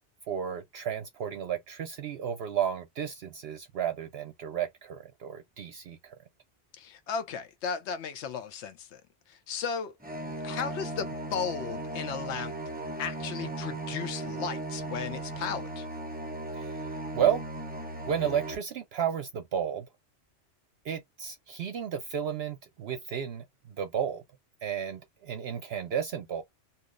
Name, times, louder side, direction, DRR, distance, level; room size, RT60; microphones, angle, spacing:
voice 1, 0.3-6.1 16.5-16.8 17.1-17.4 18.1-19.9 20.8-24.2 24.6-26.4, right 9 dB, 65° right, 0.8 m, -32 dB
voice 2, 6.8-9.0 9.3-10.0 10.4-12.5 13.0-15.9, left 6 dB, 70° left, 0.9 m, -35 dB
sound 1, 10.0-18.5, right 2 dB, 10° right, 0.6 m, -37 dB
2.8 x 2.0 x 3.7 m
omnidirectional pair, 1.2 m